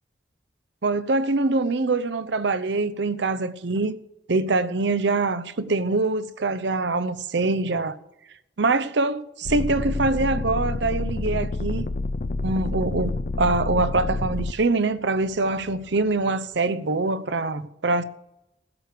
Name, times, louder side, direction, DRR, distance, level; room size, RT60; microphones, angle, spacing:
voice 1, 0.8-4.0 4.3-7.9 8.6-11.9 12.4-18.0, right 3 dB, 75° right, 0.7 m, -24 dB
sound 1, 9.4-14.5 15.2-15.9, left 2 dB, 45° left, 0.5 m, -28 dB
16.0 x 6.7 x 6.7 m
head